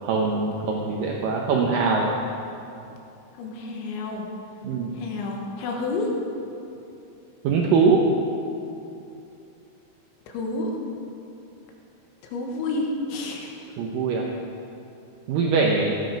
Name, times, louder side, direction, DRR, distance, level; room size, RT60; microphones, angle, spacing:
voice 1, 0.0-2.1 4.6-4.9 7.4-8.0 13.8-14.2 15.3-15.9, right 4 dB, 85° right, -1 dB, 1.9 m, -22 dB
voice 2, 3.4-4.3 4.9-6.2 10.3-10.8 12.2-13.7, left 2 dB, 80° left, 0 dB, 3.7 m, -30 dB
16.5 x 9.8 x 5.3 m, 2.7 s
omnidirectional pair, 5.3 m